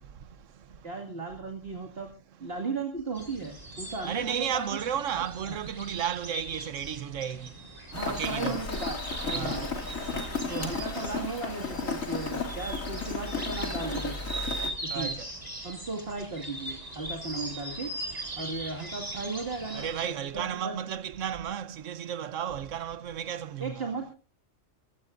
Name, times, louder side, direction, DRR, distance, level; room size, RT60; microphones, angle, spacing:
voice 1, 0.8-2.1 2.4-4.7 5.1-5.6 7.9-9.0 9.2-9.8 10.5-14.5 14.8-15.2 15.6-17.9 18.4-19.9 20.3-21.0 23.6-24.1, right 3 dB, 45° right, 2.4 m, -36 dB
sound 1, 3.1-20.1, right 1 dB, 30° right, 4.1 m, -40 dB
voice 2, 4.0-7.5 8.1-8.6 9.3-9.6 10.1-10.3 14.9-15.1 19.7-23.9, right 9 dB, 70° right, 1.2 m, -33 dB
Rain, 7.9-14.7, left 4 dB, 80° left, 3.0 m, -34 dB
23.0 x 16.0 x 2.5 m
omnidirectional pair, 1.4 m